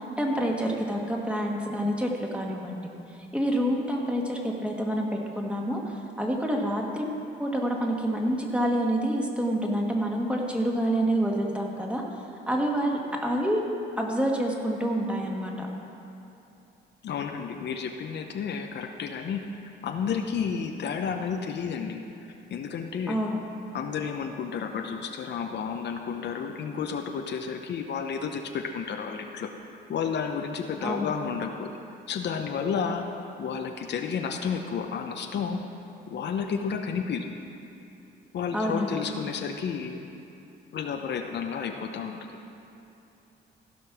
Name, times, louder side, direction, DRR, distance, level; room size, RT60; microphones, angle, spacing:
voice 1, 0.0-7.1 7.4-12.0 12.5-13.7 14.0-15.7 23.1-23.4 30.8-31.1 38.5-39.0, equal, 5° right, -1 dB, 1.6 m, -28 dB
voice 2, 17.0-19.4 19.8-22.0 22.5-23.2 23.7-29.5 29.9-31.7 32.1-33.1 33.4-35.6 36.1-37.3 38.3-40.1 40.7-42.3, left 6 dB, 60° left, 4 dB, 0.8 m, -31 dB
15.5 x 5.3 x 6.0 m, 2.9 s
cardioid pair, 90°, 20 cm